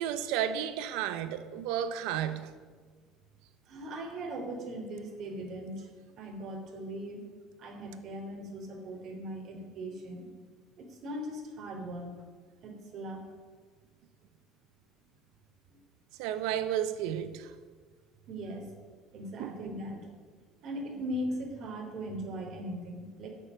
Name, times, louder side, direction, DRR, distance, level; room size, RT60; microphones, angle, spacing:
voice 1, 0.0-2.5 16.2-17.5 19.4-19.6, right 10 dB, 80° right, 1.0 m, -32 dB
voice 2, 3.7-5.9 6.2-7.2 7.6-10.3 10.8-12.2 12.6-13.2 18.3-18.7 19.1-20.1 20.6-23.3, right 1 dB, 55° right, 3.2 m, -39 dB
12.0 x 6.7 x 9.5 m
cardioid pair, 125°, 0 cm